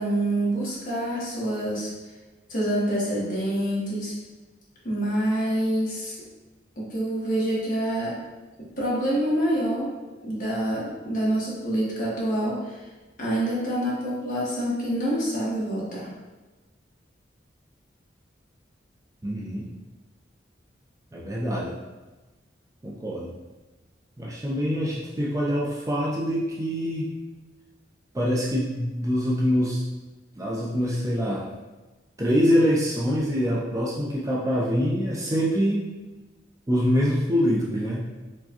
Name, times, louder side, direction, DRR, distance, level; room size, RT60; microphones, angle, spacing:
voice 1, 0.0-1.9 2.5-4.1 4.8-6.2 6.8-8.2 8.6-9.9 10.2-12.8 13.2-16.1, right 1 dB, 50° left, -6 dB, 1.1 m, -26 dB
voice 2, 19.2-19.7 21.1-21.7 22.8-23.3 24.2-27.1 28.1-29.8 30.4-31.5 32.2-35.9 36.7-38.0, equal, 20° right, -4 dB, 0.4 m, -25 dB
4.5 x 2.2 x 2.8 m, 1.2 s
head